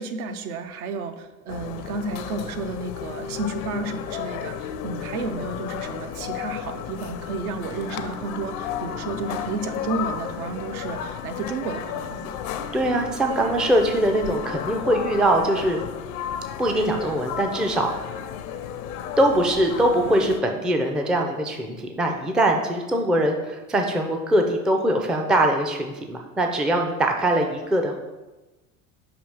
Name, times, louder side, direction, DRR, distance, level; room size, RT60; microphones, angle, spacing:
voice 1, 0.0-12.4, right 3 dB, 70° right, 7 dB, 0.7 m, -32 dB
sound 1, 1.5-20.4, left 9 dB, 65° left, 0.6 m, -33 dB
voice 2, 12.7-15.8 16.6-17.9 19.2-28.0, right 1 dB, ahead, 3 dB, 0.3 m, -22 dB
6.0 x 2.8 x 5.4 m, 1.1 s
hypercardioid pair, 80°, 45 cm